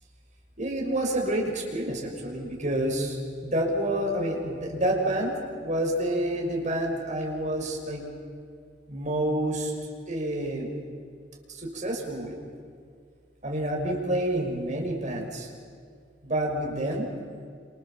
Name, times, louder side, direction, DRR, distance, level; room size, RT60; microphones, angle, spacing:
voice 1, 0.6-8.1 8.9-9.7 10.1-10.7 11.5-12.4 13.4-15.5 16.2-17.1, right 1 dB, 45° right, 1 dB, 6.0 m, -28 dB
29.0 x 27.5 x 7.6 m, 2.2 s
head